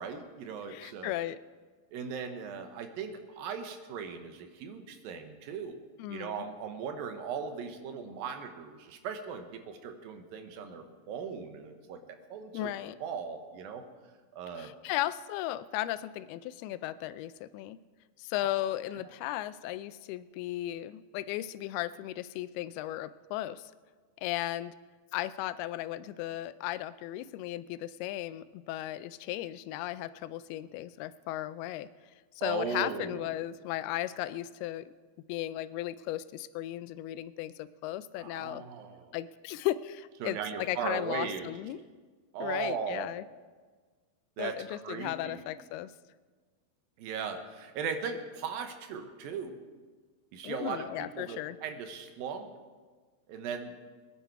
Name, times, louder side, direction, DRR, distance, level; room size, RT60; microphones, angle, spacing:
voice 1, 0.0-1.1 1.9-5.8 6.1-12.0 12.3-12.7 13.0-13.9 14.3-14.7 32.4-33.3 38.2-39.1 40.2-41.5 42.3-43.1 44.4-45.4 47.0-49.6 50.3-52.5 53.3-53.7, right 6 dB, 75° right, 7 dB, 2.6 m, -38 dB
voice 2, 0.7-1.4 6.0-6.5 12.5-13.0 14.6-17.8 18.2-23.7 24.2-24.7 25.1-31.9 32.4-34.9 35.3-38.6 39.1-41.8 42.4-43.2 44.4-45.9 50.4-51.6, left 14 dB, 90° left, 15 dB, 2.5 m, -36 dB
21.5 x 10.5 x 4.6 m, 1.4 s
omnidirectional pair, 4.4 m